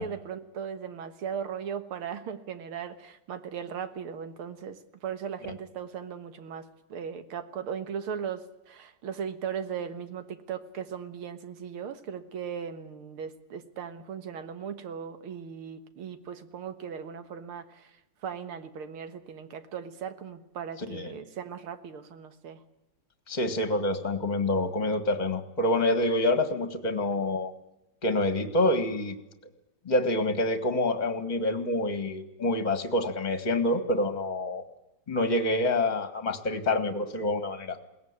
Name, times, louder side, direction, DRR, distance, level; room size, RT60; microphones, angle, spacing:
voice 1, 0.0-17.9 18.2-22.6, right 7 dB, 80° right, 9 dB, 2.3 m, -38 dB
voice 2, 20.8-21.1 23.3-27.5 28.0-29.1 29.8-34.6 35.1-37.8, left 1 dB, 20° left, 9 dB, 1.8 m, -27 dB
21.5 x 18.0 x 9.8 m, 0.93 s
omnidirectional pair, 2.3 m